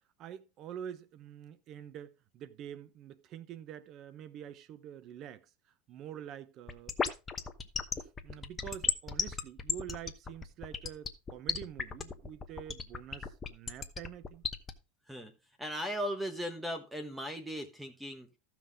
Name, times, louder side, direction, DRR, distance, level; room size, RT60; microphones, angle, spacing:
voice 1, 0.2-5.5 5.9-7.0 8.0-14.4, right 10 dB, 40° right, 0.8 m, -46 dB
sound 1, 6.7-14.7, left 5 dB, 20° left, 0.9 m, -34 dB
voice 2, 15.1-18.3, equal, 5° right, 1.2 m, -38 dB
14.5 x 5.8 x 3.6 m
supercardioid pair, 140°, 0 cm